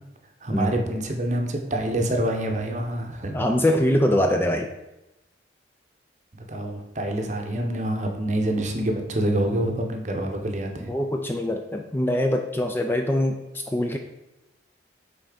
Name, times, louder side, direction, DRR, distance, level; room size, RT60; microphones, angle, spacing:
voice 1, 0.4-3.5 6.5-10.9, right 1 dB, 40° right, 3 dB, 0.8 m, -26 dB
voice 2, 3.3-4.7 10.9-13.4 13.7-14.0, left 1 dB, 10° left, 3 dB, 0.3 m, -23 dB
5.8 x 4.0 x 5.0 m, 0.94 s
head